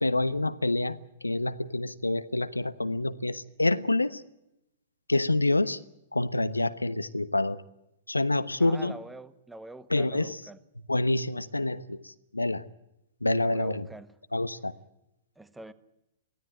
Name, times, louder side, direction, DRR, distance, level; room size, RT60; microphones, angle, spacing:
voice 1, 0.0-4.2 5.1-5.8 6.1-7.6 8.1-8.9 9.9-10.4 10.9-12.6 13.2-13.9 14.3-14.7, left 2 dB, 85° left, 14 dB, 1.0 m, -27 dB
voice 2, 8.6-10.6 13.4-14.1 15.4-15.7, right 2 dB, 5° right, 15 dB, 1.3 m, -45 dB
23.0 x 16.5 x 9.1 m, 0.88 s
figure-of-eight pair, 110°, 0 cm